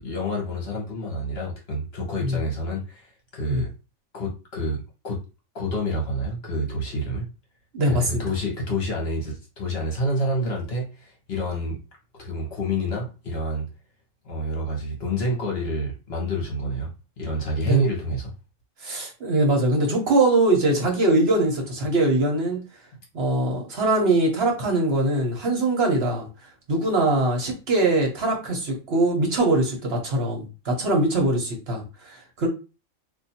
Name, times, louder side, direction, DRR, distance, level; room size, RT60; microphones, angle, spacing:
voice 1, 0.0-3.7 4.1-5.2 5.5-7.3 7.9-11.8 12.2-13.7 14.2-16.9 17.2-18.3, equal, 55° left, 0 dB, 1.3 m, -28 dB
voice 2, 7.7-8.2 17.6-17.8 18.8-22.6 23.1-26.3 26.7-32.5, right 2 dB, 55° right, 1 dB, 1.2 m, -22 dB
2.6 x 2.6 x 4.2 m, 0.31 s
omnidirectional pair, 1.3 m